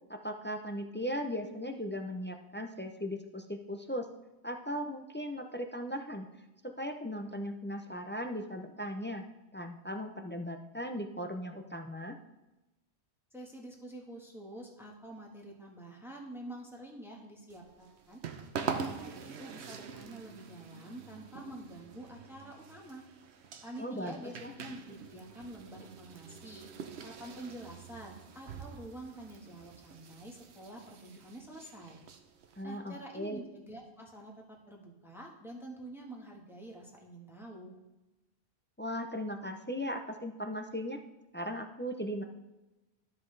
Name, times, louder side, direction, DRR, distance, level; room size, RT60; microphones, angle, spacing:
voice 1, 0.1-4.0 4.4-6.3 6.6-9.2 9.5-12.2 23.8-24.1 24.4-24.5 32.6-33.4 38.8-41.0 41.3-42.2, equal, 20° left, 5 dB, 0.3 m, -38 dB
voice 2, 13.3-18.2 18.6-23.0 23.6-26.7 27.0-32.0 32.6-37.8, right 1 dB, ahead, -1 dB, 1.3 m, -47 dB
sound 1, 17.5-32.6, right 6 dB, 85° right, 1.0 m, -45 dB
13.0 x 5.8 x 3.3 m, 1.0 s
omnidirectional pair, 1.1 m